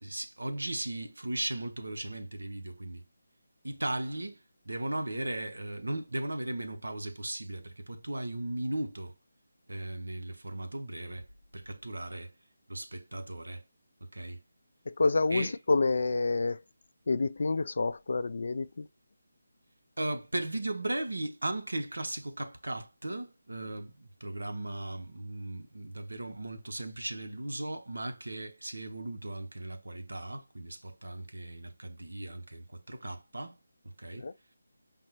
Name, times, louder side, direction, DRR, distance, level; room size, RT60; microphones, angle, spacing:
voice 1, 0.0-3.0 3.6-4.4 4.6-9.1 9.7-11.3 11.5-12.3 12.7-13.6 14.0-14.4 15.3-15.6 20.0-33.6 34.0-34.3, right 1 dB, 90° right, 0.8 m, -37 dB
voice 2, 14.9-16.6 17.1-18.8 34.1-34.3, left 3 dB, 60° left, 0.3 m, -28 dB
5.1 x 2.1 x 3.0 m
figure-of-eight pair, 165°, 0 cm